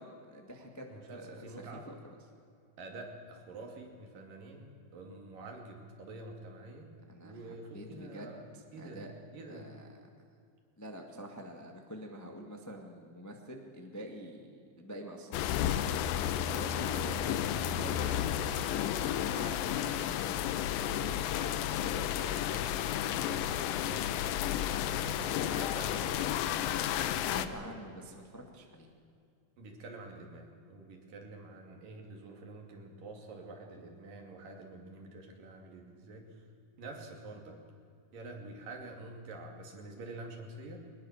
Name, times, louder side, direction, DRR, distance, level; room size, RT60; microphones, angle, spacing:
voice 1, 0.0-0.8 1.1-1.5 1.8-1.9 7.1-7.3 7.7-8.3 8.8-9.1 9.5-9.8 10.8-15.6 27.3-28.9, equal, 10° left, 2 dB, 0.9 m, -46 dB
voice 2, 0.6-1.9 2.8-6.9 7.2-8.4 8.7-9.1 9.3-9.7 16.5-20.6 21.3-24.8 25.1-27.8 29.6-36.5 36.8-37.6 38.1-40.8, right 2 dB, 70° right, 2 dB, 4.1 m, -47 dB
sound 1, 15.3-27.5, left 10 dB, 80° left, 2.5 m, -32 dB
22.0 x 20.5 x 7.3 m, 2.4 s
omnidirectional pair, 4.2 m